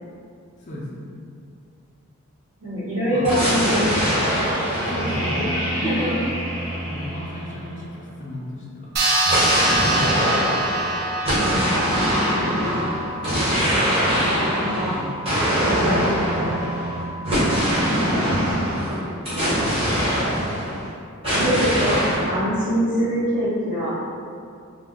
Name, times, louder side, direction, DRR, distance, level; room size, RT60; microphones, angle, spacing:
voice 1, 0.6-1.1 3.1-3.3 4.8-6.3 6.8-8.9 9.8-10.5 14.9-15.1, left 1 dB, 35° left, -5 dB, 0.3 m, -32 dB
voice 2, 2.6-4.0 5.7-6.2 11.4-12.6 14.6-14.9 15.7-16.6 18.8-19.0 19.4-19.7 21.2-22.0 22.3-24.0, equal, 70° right, -17 dB, 1.0 m, -25 dB
sound 1, 3.2-8.0 9.2-20.9 21.2-22.3, equal, 25° right, 0.8 m, -23 dB
sound 2, 9.0-13.8, right 2 dB, 45° right, 0.4 m, -25 dB
sound 3, 11.7-17.9, equal, 85° left, 0.5 m, -37 dB
2.5 x 2.0 x 3.5 m, 2.4 s
head